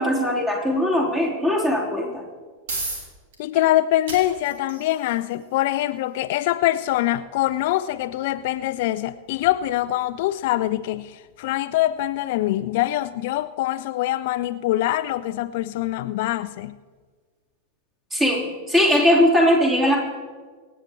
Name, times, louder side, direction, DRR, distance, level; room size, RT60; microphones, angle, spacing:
voice 1, 0.0-2.2 18.1-20.0, left 1 dB, 15° right, 0 dB, 2.9 m, -20 dB
sound 1, 2.2-17.1, right 2 dB, 55° right, 3.1 m, -42 dB
voice 2, 3.4-16.8, left 15 dB, 50° left, 13 dB, 0.4 m, -24 dB
25.0 x 8.7 x 3.5 m, 1.5 s
figure-of-eight pair, 90°, 0 cm